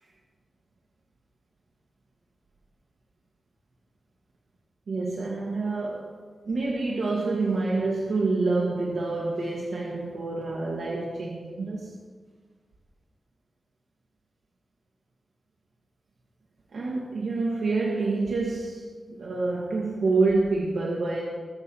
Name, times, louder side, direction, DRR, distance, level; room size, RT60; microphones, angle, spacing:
voice 1, 4.9-6.1 6.5-11.9 16.7-21.3, right 3 dB, 75° right, 1.8 m, -27 dB
21.5 x 7.3 x 4.6 m
wide cardioid pair, 145°, 0 cm